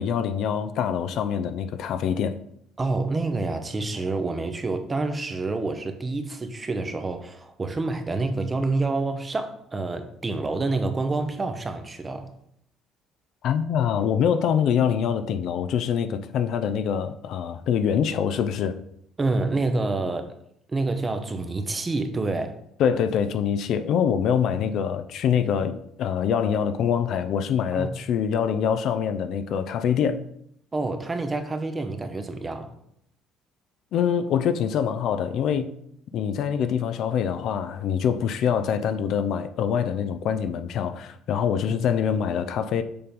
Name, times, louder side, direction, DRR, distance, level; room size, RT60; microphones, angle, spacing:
voice 1, 0.0-2.4 13.4-18.8 22.8-30.2 33.9-35.8 36.1-42.8, left 8 dB, 60° left, 0.5 m, -24 dB
voice 2, 2.8-12.3 19.2-20.4 20.7-22.6 27.7-27.9 30.7-32.7, right 3 dB, 20° right, 0.8 m, -28 dB
6.8 x 3.8 x 5.2 m
cardioid pair, 135°, 0 cm